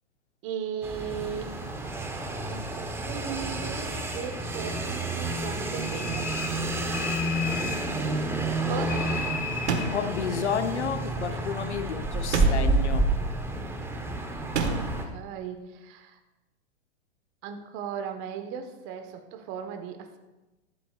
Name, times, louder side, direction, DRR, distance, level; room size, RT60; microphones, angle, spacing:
voice 1, 0.4-1.6 2.5-6.3 8.7-9.1 11.3-11.4 14.3-16.2 17.4-20.2, right 7 dB, 40° right, 6 dB, 1.3 m, -37 dB
sound 1, 0.8-15.0, right 2 dB, 5° right, 1.1 m, -29 dB
sound 2, 5.8-6.6 6.9-7.9 8.9-9.9, left 8 dB, 25° left, 1.1 m, -35 dB
sound 3, 9.7-10.2 12.3-12.9 14.5-15.0, right 4 dB, 75° right, 1.7 m, -29 dB
voice 2, 9.9-13.1, left 7 dB, 85° left, 9 dB, 0.9 m, -31 dB
14.0 x 11.5 x 2.5 m, 1.1 s
hypercardioid pair, 115°, 33 cm